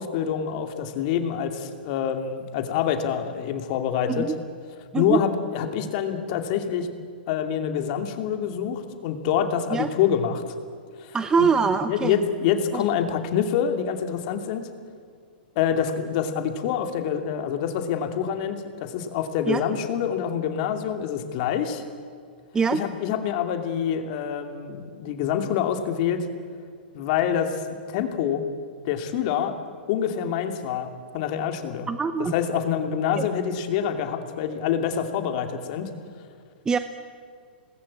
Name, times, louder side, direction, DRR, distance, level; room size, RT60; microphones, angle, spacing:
voice 1, 0.0-4.3 4.9-6.9 7.3-10.5 11.0-11.5 11.9-14.7 15.6-21.8 22.7-26.3 26.9-28.4 28.8-29.5 29.9-31.9 32.2-35.9, left 8 dB, 50° left, 6 dB, 2.7 m, -26 dB
voice 2, 11.1-12.2 12.7-12.8 19.5-19.6 22.5-22.8 31.9-32.3 33.2-33.3 36.7-36.8, right 5 dB, 15° right, 10 dB, 0.8 m, -23 dB
26.5 x 20.0 x 8.6 m, 2.1 s
hypercardioid pair, 135°, 6 cm